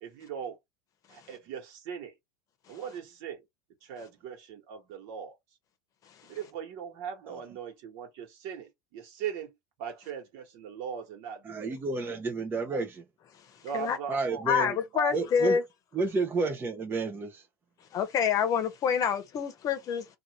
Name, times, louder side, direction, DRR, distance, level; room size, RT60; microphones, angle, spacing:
voice 1, 0.0-0.6 1.1-2.1 2.7-3.5 3.8-5.4 6.2-12.2 12.6-12.8 13.6-15.2 15.4-15.6, right 8 dB, 60° right, 1.4 m, -40 dB
voice 2, 11.4-13.0 14.1-14.8 15.1-15.6 15.9-17.4, right 3 dB, 20° right, 0.6 m, -31 dB
voice 3, 14.5-15.6 17.9-20.1, left 7 dB, 40° left, 0.8 m, -27 dB
2.6 x 2.5 x 2.9 m
supercardioid pair, 110°, 9 cm